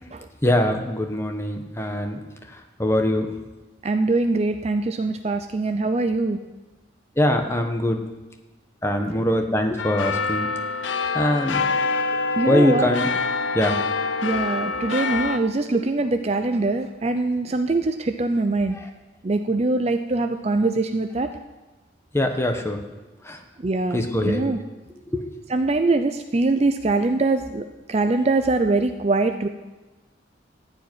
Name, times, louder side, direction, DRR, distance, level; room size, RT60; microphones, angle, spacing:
voice 1, 0.4-2.2 2.8-3.3 7.2-8.0 8.8-10.5 11.1-11.6 12.5-13.1 13.5-13.8 18.7-18.8 22.1-22.8 23.2-23.4 23.9-24.4 25.1-25.2, left 1 dB, 15° left, 4 dB, 1.0 m, -22 dB
voice 2, 3.8-6.4 12.4-12.9 14.2-18.8 19.2-21.3 23.6-24.6 25.5-29.5, right 2 dB, 35° right, 8 dB, 0.5 m, -23 dB
sound 1, 9.8-15.4, left 4 dB, 80° left, 0.7 m, -25 dB
14.0 x 4.9 x 9.3 m, 1.1 s
head